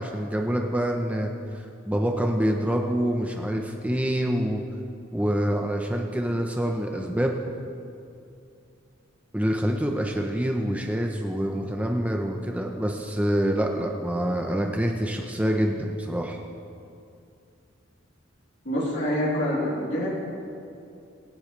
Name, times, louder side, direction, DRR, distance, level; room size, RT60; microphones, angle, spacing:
voice 1, 0.0-4.6 5.1-7.3 9.3-16.4, equal, 5° right, 2 dB, 0.6 m, -26 dB
voice 2, 18.6-20.1, equal, 60° left, -5 dB, 3.3 m, -26 dB
25.0 x 8.4 x 3.2 m, 2.6 s
head